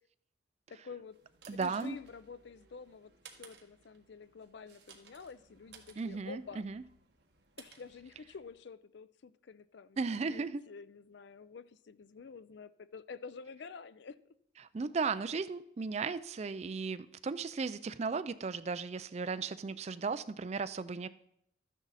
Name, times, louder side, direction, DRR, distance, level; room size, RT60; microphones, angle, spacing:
voice 1, 0.7-1.2 1.5-3.1 3.4-6.6 7.6-10.0 10.3-14.2, left 5 dB, 60° left, 16 dB, 0.4 m, -49 dB
sound 1, 0.9-8.7, right 6 dB, 60° right, 1.6 m, -60 dB
voice 2, 1.5-2.0 6.0-6.8 10.0-10.6 14.6-21.1, right 4 dB, 35° right, 14 dB, 0.4 m, -36 dB
13.0 x 10.0 x 4.1 m, 0.75 s
head